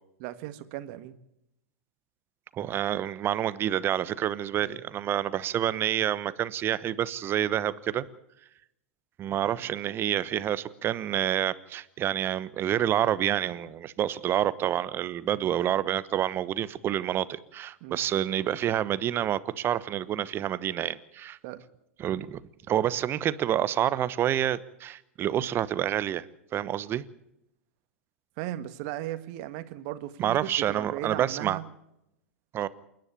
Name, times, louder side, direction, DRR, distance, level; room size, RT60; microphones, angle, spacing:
voice 1, 0.2-1.1 4.6-4.8 9.4-9.7 15.4-15.6 17.8-18.0 21.4-21.6 28.4-31.6, right 14 dB, 50° right, 1.6 m, -37 dB
voice 2, 2.5-8.0 9.2-21.4 22.0-22.4 22.7-26.2 26.5-27.0 30.2-31.6 32.5-32.7, right 11 dB, 30° right, 1.0 m, -28 dB
28.0 x 10.5 x 8.8 m
hypercardioid pair, 100°, 7 cm